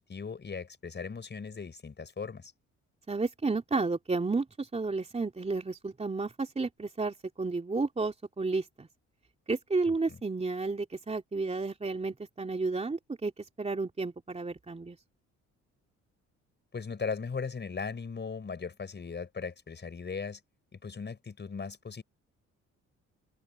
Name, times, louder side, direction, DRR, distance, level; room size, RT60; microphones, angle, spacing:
voice 1, 0.0-2.5 9.9-10.2 16.7-20.4 20.7-22.0, left 5 dB, 35° left, 5.6 m, -38 dB
voice 2, 3.1-8.9 9.5-15.0, right 3 dB, 20° right, 3.1 m, -32 dB
cardioid pair, 90°, 30 cm